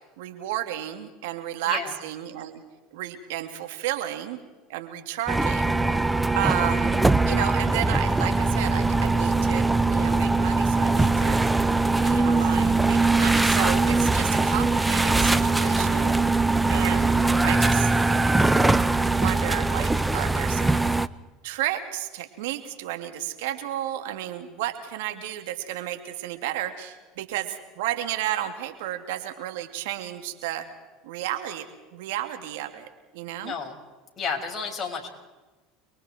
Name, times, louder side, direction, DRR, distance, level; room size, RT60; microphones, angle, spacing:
voice 1, 0.2-2.6 2.9-4.4 4.7-5.8 6.3-11.4 12.0-16.1 16.7-17.1 17.4-17.9 19.1-20.8 21.4-30.7 31.0-31.7 31.9-33.6, right 13 dB, 80° right, 7 dB, 2.8 m, -32 dB
sound 1, 5.3-21.1, right 3 dB, 10° right, 0.8 m, -21 dB
voice 2, 33.4-33.7 34.2-35.1, left 5 dB, 30° left, 1 dB, 6.2 m, -31 dB
29.5 x 22.5 x 4.6 m, 1.2 s
supercardioid pair, 100°, 0 cm